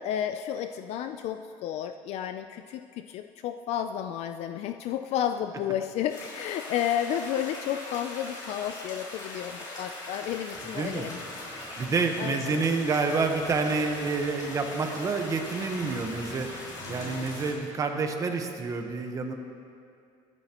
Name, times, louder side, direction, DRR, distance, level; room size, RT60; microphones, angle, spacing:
voice 1, 0.0-11.2 12.2-12.6 16.8-17.3, left 10 dB, 55° left, 8 dB, 0.4 m, -32 dB
sound 1, 6.1-17.5, left 2 dB, 30° left, 3.8 m, -41 dB
sound 2, 10.5-17.5, equal, 10° right, 2.6 m, -50 dB
voice 2, 10.6-11.1 11.8-16.5 16.9-19.3, right 4 dB, 25° right, 5 dB, 1.0 m, -28 dB
24.0 x 9.7 x 3.0 m, 2.5 s
cardioid pair, 150°, 13 cm